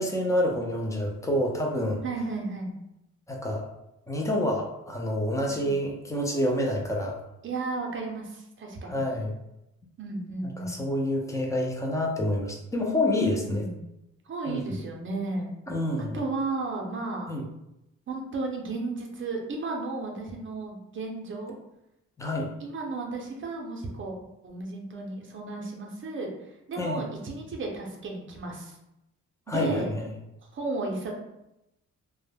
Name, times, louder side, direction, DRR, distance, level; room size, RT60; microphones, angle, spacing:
voice 1, 0.0-2.0 3.3-3.7 4.1-7.2 8.8-9.4 10.6-13.6 14.5-14.8 15.7-16.2 17.3-17.4 22.2-22.5 26.8-27.1 29.5-30.1, left 1 dB, 10° left, 0 dB, 0.3 m, -28 dB
voice 2, 2.0-2.7 5.5-5.7 7.4-8.9 10.0-10.8 13.4-13.8 14.3-15.5 16.1-17.3 18.1-21.5 22.6-24.1 24.4-26.3 26.7-28.7 29.5-29.9 30.5-31.1, right 3 dB, 40° right, 0 dB, 0.5 m, -33 dB
2.1 x 2.0 x 3.3 m, 0.88 s
wide cardioid pair, 140°, 30 cm